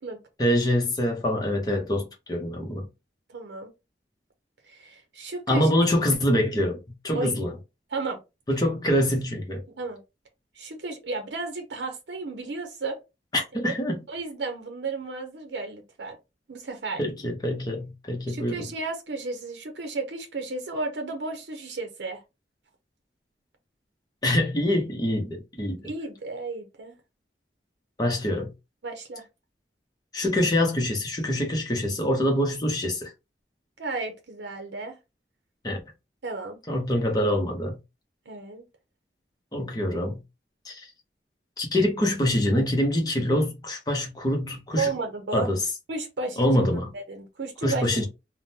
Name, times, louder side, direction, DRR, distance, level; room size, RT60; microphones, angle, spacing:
voice 1, 0.4-2.9 5.5-7.6 8.5-9.6 13.3-14.0 17.0-18.7 24.2-25.9 28.0-28.5 30.1-33.1 35.6-35.8 36.7-37.8 39.5-40.2 40.6-40.9 41.6-44.9 45.3-45.6 46.4-46.9 47.6-48.1, left 1 dB, 20° left, 0.7 m, -25 dB
voice 2, 3.3-3.7 4.6-5.7 7.1-7.5 7.9-8.2 9.8-10.0 10.6-13.0 13.6-13.7 14.1-16.2 16.5-17.1 18.3-22.2 25.8-27.0 28.8-29.2 33.8-35.0 36.2-36.6 38.3-38.6 44.8-45.5 45.9-48.1, right 3 dB, 80° right, 0.6 m, -33 dB
3.5 x 2.1 x 2.7 m
head